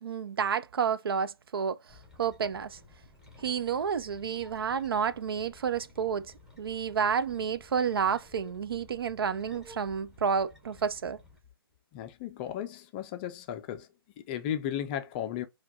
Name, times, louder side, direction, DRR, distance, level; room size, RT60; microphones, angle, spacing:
voice 1, 0.0-1.8 2.2-2.8 3.4-11.2, right 7 dB, 70° right, 0.4 m, -30 dB
sound 1, 1.9-11.4, left 3 dB, 5° right, 0.9 m, -55 dB
voice 2, 11.9-13.9 14.2-15.5, left 10 dB, 25° left, 0.4 m, -35 dB
4.5 x 2.3 x 2.3 m
figure-of-eight pair, 140°, 13 cm